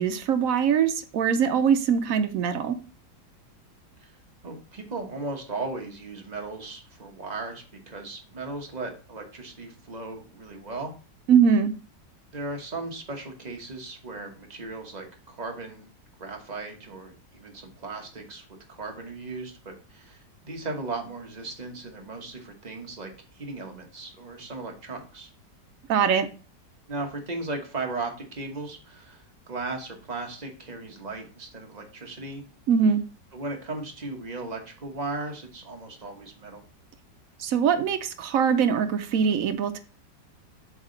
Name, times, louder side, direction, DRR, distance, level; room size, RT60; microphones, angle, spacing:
voice 1, 0.0-2.8 11.3-11.7 25.9-26.3 32.7-33.0 37.4-39.8, right 7 dB, 65° right, 9 dB, 0.9 m, -22 dB
voice 2, 4.4-10.9 12.3-15.9 16.2-25.3 26.9-32.4 33.3-36.6, right 3 dB, 30° right, 2 dB, 1.0 m, -37 dB
7.4 x 3.6 x 3.8 m, 0.36 s
omnidirectional pair, 1.9 m